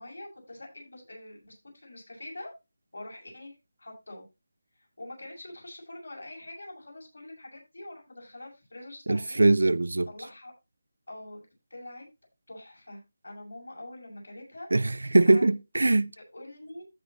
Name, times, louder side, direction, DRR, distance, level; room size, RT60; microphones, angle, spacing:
voice 1, 0.0-2.5 2.9-4.2 4.8-9.4 10.1-10.5 11.1-11.4 11.7-12.1 12.5-14.7 15.3-15.4 16.3-16.8, left 1 dB, 75° left, 7.0 m, -44 dB
voice 2, 9.1-10.1 14.7-16.1, right 2 dB, 80° right, 0.5 m, -22 dB
14.5 x 6.3 x 3.0 m
figure-of-eight pair, 165°, 0 cm